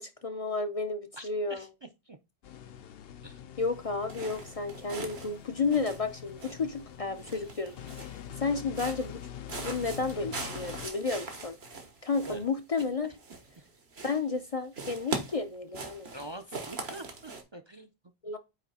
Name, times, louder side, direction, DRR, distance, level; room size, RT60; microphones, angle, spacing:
voice 1, 0.0-1.7 3.6-9.2 9.6-11.6 12.0-13.1 14.0-16.1 18.2-18.4, left 4 dB, 40° left, 0.6 m, -32 dB
voice 2, 1.2-1.7 2.1-2.2 3.2-3.4 12.3-12.4 16.1-17.9, right 1 dB, 35° right, 0.5 m, -44 dB
sound 1, 2.4-10.9, left 10 dB, 70° left, 0.8 m, -45 dB
sound 2, 4.1-5.4 5.6-6.8 7.2-8.3 8.7-9.2 9.5-13.7 13.9-14.4 14.7-17.4, right 3 dB, 80° right, 1.7 m, -41 dB
9.1 x 3.2 x 4.2 m
omnidirectional pair, 1.0 m